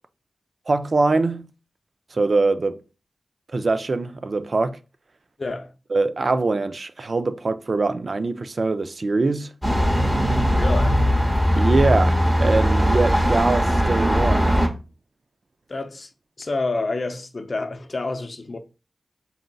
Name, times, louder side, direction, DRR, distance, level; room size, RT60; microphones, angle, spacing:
voice 1, 0.7-1.5 2.1-2.8 3.5-4.8 5.9-9.5 11.6-14.6, right 3 dB, 55° right, 0.3 m, -23 dB
voice 2, 5.4-5.7 10.6-11.0 15.7-16.1 16.4-18.6, left 3 dB, 50° left, 0.5 m, -28 dB
sound 1, 9.6-14.7, equal, 10° right, 1.0 m, -19 dB
4.0 x 3.8 x 2.3 m
wide cardioid pair, 65°, 0 cm